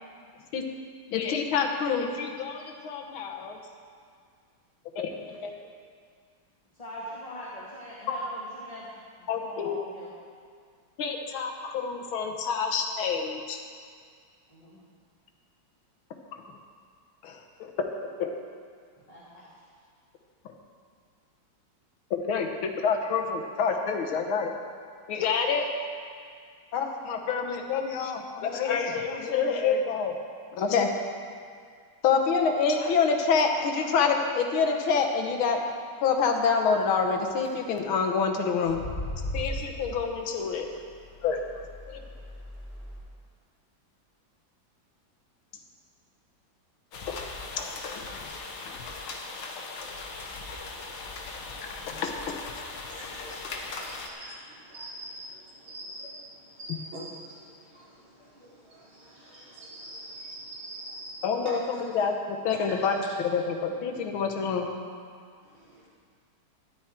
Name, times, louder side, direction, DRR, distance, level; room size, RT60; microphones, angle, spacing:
voice 1, 1.1-3.6 5.0-5.6 8.1-8.2 9.3-9.8 11.0-13.6 17.2-17.7 18.0-18.4 22.1-24.5 25.1-25.7 26.7-30.1 30.5-30.9 32.0-35.6 36.0-38.8 39.3-40.7 41.2-41.6 41.9-42.0 47.1-47.2 47.9-48.2 51.7-52.5 61.2-62.1 62.4-63.0 63.3-64.7, left 5 dB, 85° left, 3 dB, 1.9 m, -27 dB
voice 2, 6.8-8.9 9.3-10.1 14.5-14.8 19.1-19.4, equal, 20° left, -7 dB, 1.7 m, -42 dB
sound 1, 37.1-37.5 38.6-43.0, left 1 dB, 35° left, 3.1 m, -38 dB
sound 2, 46.9-54.1, left 3 dB, 65° left, 1.7 m, -39 dB
voice 3, 52.8-61.5 61.9-62.0 62.7-62.8 65.4-65.9, right 1 dB, 80° right, -10 dB, 5.0 m, -44 dB
13.5 x 11.5 x 4.4 m, 2.1 s
omnidirectional pair, 2.2 m